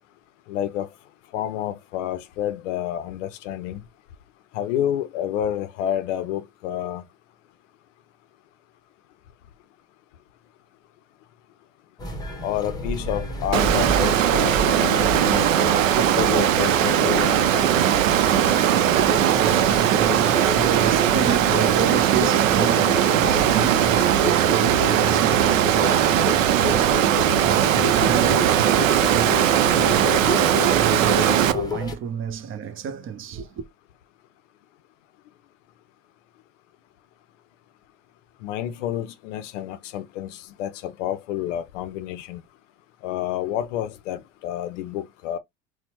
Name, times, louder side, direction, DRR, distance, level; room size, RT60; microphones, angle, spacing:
voice 1, 0.5-0.9 1.3-3.8 4.5-7.0 12.4-15.5 15.9-17.9 38.4-42.4 43.0-45.4, left 11 dB, 70° left, 0.5 m, -29 dB
sound 1, 12.0-32.0, left 1 dB, 10° left, 0.9 m, -30 dB
Water, 13.5-31.5, right 10 dB, 80° right, 0.5 m, -19 dB
voice 2, 18.7-33.6, right 8 dB, 35° right, 0.6 m, -30 dB
4.2 x 2.1 x 2.8 m
hypercardioid pair, 75°, 39 cm